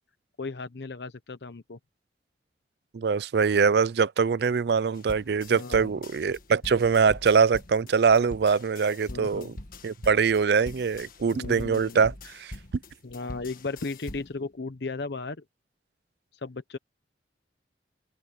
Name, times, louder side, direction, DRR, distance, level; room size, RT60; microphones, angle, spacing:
voice 1, 0.4-1.8 5.5-5.9 9.1-9.5 11.3-12.1 13.0-15.4 16.3-16.8, left 3 dB, 70° left, 0.8 m, -36 dB
voice 2, 2.9-9.5 9.8-12.5, right 5 dB, 65° right, 0.4 m, -23 dB
sound 1, 5.0-14.4, left 1 dB, 50° left, 1.6 m, -43 dB
head